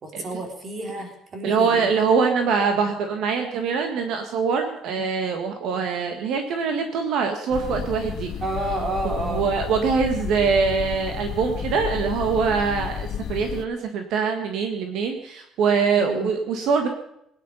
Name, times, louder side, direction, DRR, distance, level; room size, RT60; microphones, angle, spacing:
voice 1, 0.0-1.9 8.4-9.5 16.0-16.3, right 2 dB, 30° right, 3 dB, 3.6 m, -30 dB
voice 2, 1.4-8.3 9.0-16.9, right 5 dB, 70° right, 5 dB, 1.7 m, -23 dB
sound 1, 7.5-13.7, left 9 dB, 50° left, 0.5 m, -32 dB
21.0 x 10.0 x 5.6 m, 0.78 s
cardioid pair, 160°, 0 cm